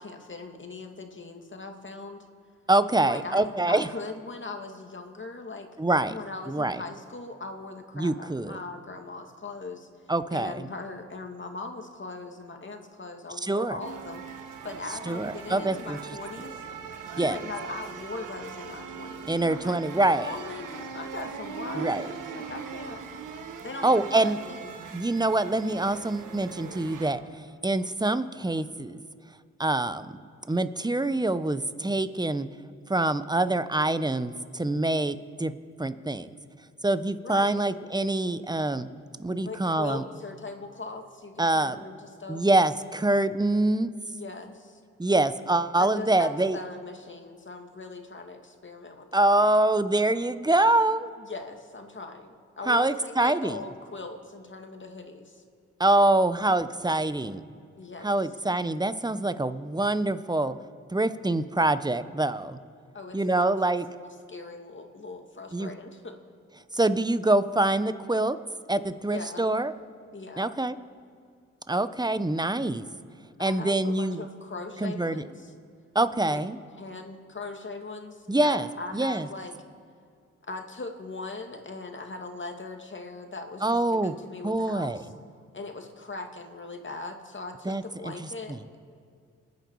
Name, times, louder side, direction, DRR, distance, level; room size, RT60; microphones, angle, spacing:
voice 1, 0.0-2.2 2.9-5.7 6.0-14.2 14.6-16.6 17.1-23.0 23.6-24.8 37.2-37.6 39.4-42.4 44.2-44.8 45.8-49.6 51.2-55.4 57.8-58.1 62.9-63.5 63.9-66.1 69.1-69.5 70.1-70.5 73.4-75.5 76.3-76.4 76.8-79.5 80.4-85.1 85.5-88.8, left 3 dB, 40° left, 4 dB, 2.4 m, -40 dB
voice 2, 2.7-3.9 5.8-6.1 6.5-6.8 8.0-8.6 10.1-10.6 13.4-13.8 15.1-16.0 17.2-17.4 19.3-20.3 21.8-22.1 23.8-24.4 24.9-27.2 27.6-29.0 29.6-30.2 30.5-32.5 32.9-35.5 35.8-36.3 36.8-38.9 39.2-40.0 41.4-41.8 42.3-43.9 45.0-46.6 49.1-51.1 52.7-53.6 55.8-57.4 58.0-60.6 60.9-62.6 63.1-63.9 65.5-65.7 66.7-68.4 68.7-69.7 70.4-70.8 71.7-72.8 73.4-74.2 74.8-75.2 75.9-76.6 78.3-78.7 78.9-79.3 83.6-84.1 84.4-85.0 87.6-88.6, right 2 dB, 15° right, 12 dB, 1.1 m, -25 dB
sound 1, 13.8-27.1, right 6 dB, 80° right, 1.5 m, -40 dB
28.0 x 9.6 x 4.9 m, 2.2 s
supercardioid pair, 45°, 31 cm